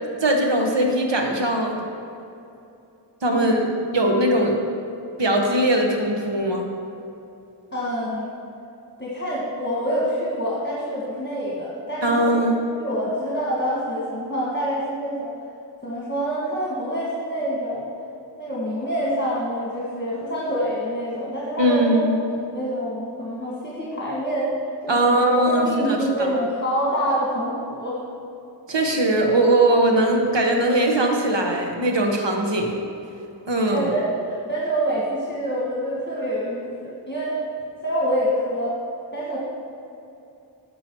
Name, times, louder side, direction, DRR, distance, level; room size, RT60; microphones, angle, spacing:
voice 1, 0.2-1.8 3.2-4.6 5.2-6.7 12.0-12.5 21.6-22.2 24.9-26.3 28.7-32.7 33.5-33.9, right 1 dB, 80° right, 1 dB, 1.3 m, -20 dB
voice 2, 7.7-8.3 9.0-12.5 12.8-15.3 15.8-17.9 18.4-24.5 24.8-28.0 33.7-37.3 37.8-38.8 39.1-39.4, equal, 25° left, -6 dB, 1.5 m, -26 dB
10.5 x 6.1 x 4.7 m, 2.7 s
wide cardioid pair, 65°, 43 cm